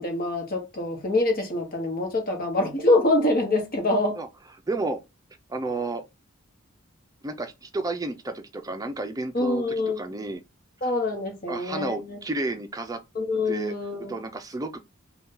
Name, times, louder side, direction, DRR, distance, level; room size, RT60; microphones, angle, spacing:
voice 1, 0.0-4.2 9.3-10.0 10.8-12.2 13.1-14.2, left 2 dB, 45° left, 1.0 m, -25 dB
voice 2, 4.7-5.0 5.5-6.0 7.2-10.4 11.5-13.0 13.5-13.7 14.1-14.8, right 2 dB, 20° right, 0.4 m, -31 dB
2.7 x 2.3 x 3.6 m
head